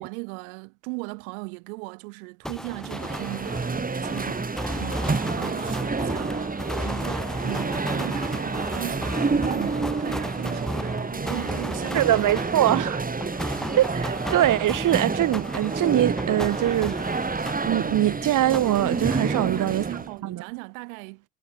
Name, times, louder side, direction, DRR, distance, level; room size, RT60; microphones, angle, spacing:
voice 1, 0.0-12.2 19.3-21.2, right 33 dB, 75° right, 6.3 m, -38 dB
sound 1, 2.4-18.2 18.5-19.9, equal, ahead, 1.4 m, -35 dB
sound 2, 2.8-20.1, right 4 dB, 20° right, 4.6 m, -29 dB
voice 2, 11.9-13.0 13.8-17.0 17.4-19.8 20.2-20.4, right 13 dB, 50° right, 1.6 m, -23 dB
hypercardioid pair, 75°, 42 cm